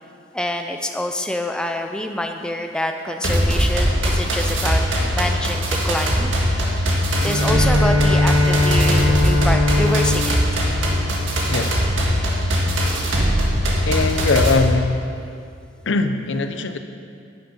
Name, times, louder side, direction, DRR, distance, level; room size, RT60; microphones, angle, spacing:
voice 1, 0.3-6.3 7.2-10.4 12.6-12.9, left 1 dB, 5° left, 4 dB, 0.4 m, -26 dB
sound 1, 3.2-14.5, equal, 90° right, 1.7 m, -20 dB
Bowed string instrument, 7.2-11.9, left 2 dB, 45° left, 1.8 m, -21 dB
voice 2, 13.8-15.0 15.8-16.8, left 3 dB, 75° left, 8 dB, 0.6 m, -20 dB
9.6 x 9.1 x 5.3 m, 2.4 s
head